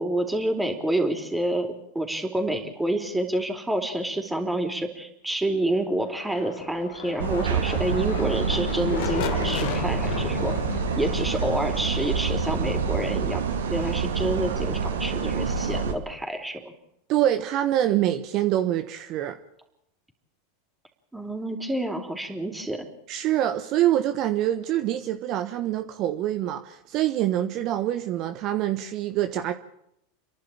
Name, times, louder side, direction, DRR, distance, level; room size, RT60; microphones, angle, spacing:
voice 1, 0.0-1.7 1.9-10.5 11.0-13.4 13.7-16.7 21.1-22.9, right 1 dB, 5° right, 4 dB, 4.0 m, -28 dB
sound 1, 6.0-13.8, left 10 dB, 60° left, 1.9 m, -35 dB
sound 2, 7.2-15.9, right 6 dB, 80° right, 2.4 m, -27 dB
voice 2, 17.1-19.4 23.1-29.5, right 12 dB, 50° right, 8 dB, 1.2 m, -25 dB
30.0 x 11.5 x 8.8 m, 0.78 s
hypercardioid pair, 95°, 0 cm